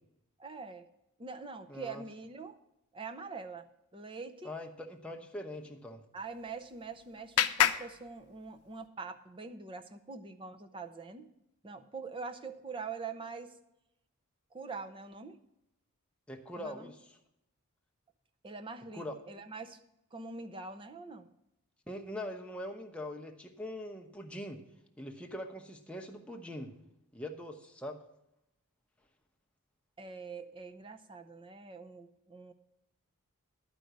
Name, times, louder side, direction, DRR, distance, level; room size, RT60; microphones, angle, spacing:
voice 1, 0.4-0.9 1.2-2.6 2.9-3.7 3.9-4.5 6.1-11.3 11.6-13.5 14.5-15.4 16.6-16.9 18.4-19.8 20.1-21.3 30.0-32.5, right 4 dB, 25° right, 8 dB, 0.6 m, -44 dB
voice 2, 1.7-2.0 4.4-6.0 16.3-17.2 18.9-19.1 21.9-24.6 25.0-26.7 27.1-28.0, left 1 dB, 5° left, 3 dB, 0.9 m, -42 dB
Clapping, 6.2-8.9, left 10 dB, 85° left, 0.6 m, -32 dB
11.5 x 5.2 x 8.0 m, 0.85 s
head